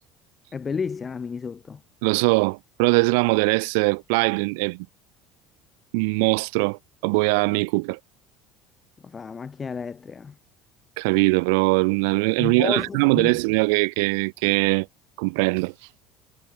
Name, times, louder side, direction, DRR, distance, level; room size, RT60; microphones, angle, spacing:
voice 1, 0.5-1.8 9.0-10.4 12.4-13.4, left 5 dB, 15° left, 5.9 m, -31 dB
voice 2, 2.0-4.8 5.9-8.0 11.0-14.9 15.2-15.7, right 31 dB, 80° right, 4.8 m, -21 dB
cardioid pair, 180°, 0 cm